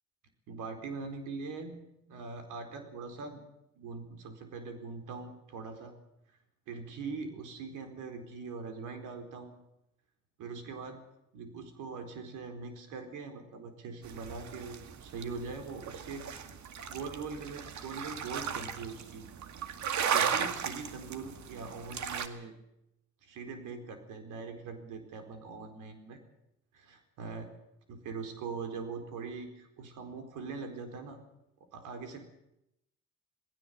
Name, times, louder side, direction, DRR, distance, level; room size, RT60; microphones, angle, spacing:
voice 1, 0.5-1.8 2.1-3.4 3.7-5.9 6.7-9.5 10.4-11.0 11.3-16.6 16.9-19.3 20.1-22.5 23.2-26.2 26.7-27.5 27.9-31.2 31.7-32.2, right 4 dB, 90° right, 6 dB, 4.3 m, -42 dB
sound 1, 14.0-22.3, right 7 dB, 70° right, 2.0 m, -36 dB
19.0 x 17.0 x 8.3 m, 0.83 s
cardioid pair, 90°, 30 cm